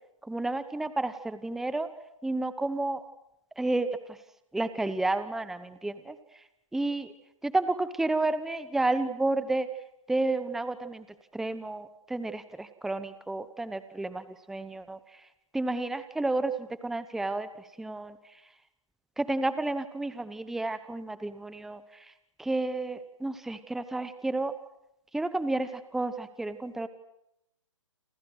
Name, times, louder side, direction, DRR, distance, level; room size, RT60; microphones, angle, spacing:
voice 1, 0.2-1.9 2.2-3.0 3.6-4.2 4.5-6.4 6.7-7.1 7.4-9.7 10.1-11.1 11.3-15.3 15.5-18.4 19.2-22.1 22.4-24.5 25.1-26.9, right 2 dB, ahead, 12 dB, 0.9 m, -31 dB
29.0 x 27.5 x 6.3 m, 0.83 s
hypercardioid pair, 145°, 17 cm